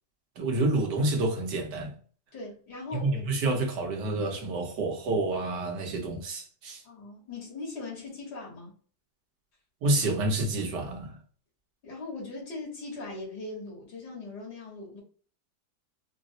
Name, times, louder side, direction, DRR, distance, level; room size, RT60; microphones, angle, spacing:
voice 1, 0.4-2.0 2.9-6.8 9.8-11.2, right 2 dB, 85° right, 1.5 m, -28 dB
voice 2, 2.3-3.2 6.8-8.7 11.8-15.0, left 3 dB, 75° left, 2.0 m, -40 dB
4.5 x 2.0 x 2.7 m
omnidirectional pair, 1.8 m